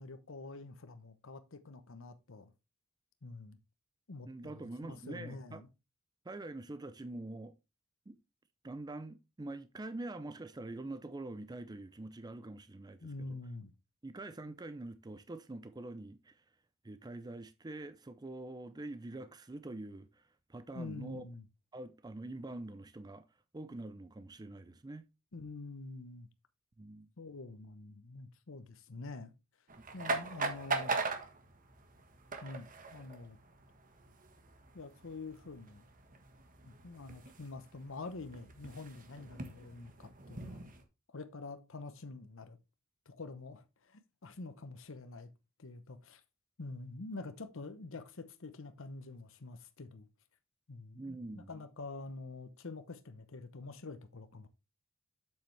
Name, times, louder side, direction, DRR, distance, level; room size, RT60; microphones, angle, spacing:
voice 1, 0.0-2.5 3.2-3.6 4.1-5.7 13.0-13.7 20.7-21.4 25.3-26.3 27.2-29.3 29.9-31.0 32.4-33.4 34.7-35.8 36.7-40.7 41.1-42.6 43.1-45.3 45.6-46.2 46.6-50.1 50.7-54.5, left 3 dB, 70° left, 0.9 m, -46 dB
voice 2, 4.2-5.6 6.3-7.5 8.1-8.2 8.6-13.4 14.0-16.4 16.8-20.2 20.5-21.2 21.7-23.2 23.5-25.0 26.8-27.1 30.0-30.2 50.9-51.6, right 2 dB, 20° right, 0.5 m, -45 dB
sound 1, 29.7-40.8, right 3 dB, 40° right, 1.4 m, -41 dB
7.6 x 7.5 x 3.3 m
head